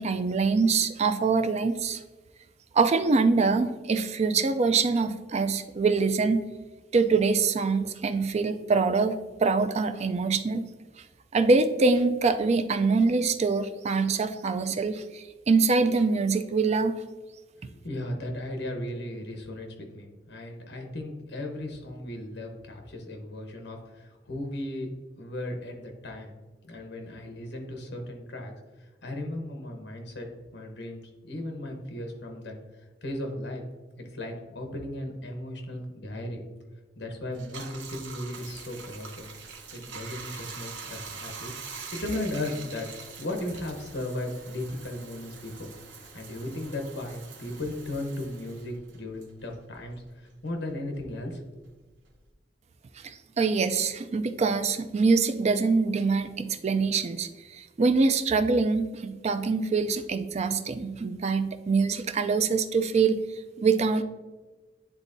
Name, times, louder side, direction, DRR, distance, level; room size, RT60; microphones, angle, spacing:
voice 1, 0.0-2.0 2.7-6.4 6.9-10.6 11.3-16.9 53.0-63.2 63.6-64.0, right 4 dB, 35° right, 9 dB, 0.4 m, -24 dB
voice 2, 17.6-26.3 26.6-33.6 34.0-36.4 37.0-39.3 39.7-42.9 43.2-45.7 46.1-51.6, left 1 dB, 65° left, 3 dB, 1.1 m, -36 dB
Bathtub (filling or washing), 37.3-50.2 50.5-52.3, right 5 dB, 85° right, 0.9 m, -44 dB
9.9 x 3.6 x 2.6 m, 1.3 s
head